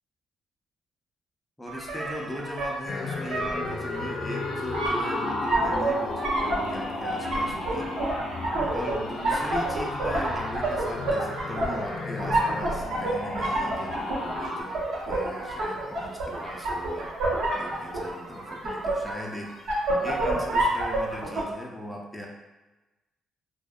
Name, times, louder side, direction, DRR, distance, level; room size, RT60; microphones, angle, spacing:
voice 1, 1.6-8.2 8.7-17.1 17.5-19.5 20.0-22.3, equal, 10° left, -1 dB, 0.4 m, -39 dB
sound 1, 1.7-21.4, right 2 dB, 85° right, 0.8 m, -29 dB
sound 2, 2.9-14.6, left 2 dB, 80° left, 0.4 m, -34 dB
2.5 x 2.1 x 2.3 m, 1.1 s
cardioid pair, 90°, 0 cm